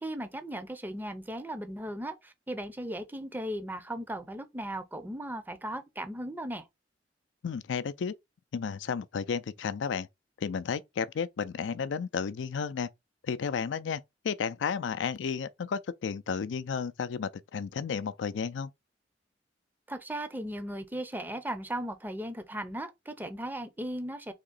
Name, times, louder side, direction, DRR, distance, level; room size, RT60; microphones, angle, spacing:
voice 1, 0.0-6.7 19.9-24.3, right 1 dB, 10° right, 0.5 m, -37 dB
voice 2, 7.4-8.1 8.5-10.1 10.4-12.9 13.2-18.7, left 6 dB, 80° left, 0.4 m, -33 dB
3.6 x 2.9 x 3.9 m
head